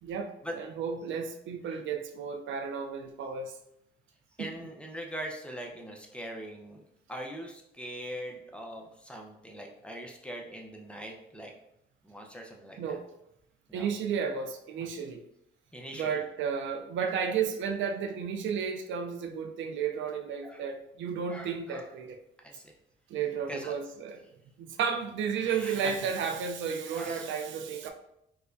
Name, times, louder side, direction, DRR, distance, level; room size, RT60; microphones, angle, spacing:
voice 1, 0.0-3.6 4.4-4.5 12.8-13.0 13.7-15.2 15.9-22.2 23.1-24.2 24.6-27.9, right 6 dB, 75° right, 5 dB, 0.5 m, -33 dB
voice 2, 4.4-6.8 7.1-11.5 12.0-13.0 13.7-13.9 15.7-16.1 20.4-20.6 21.3-21.9 22.4-22.6 23.5-23.7 25.4-26.3 26.9-27.3 27.8-27.9, equal, 5° left, 0 dB, 0.6 m, -42 dB
4.6 x 2.2 x 2.5 m, 0.79 s
cardioid pair, 90°, 20 cm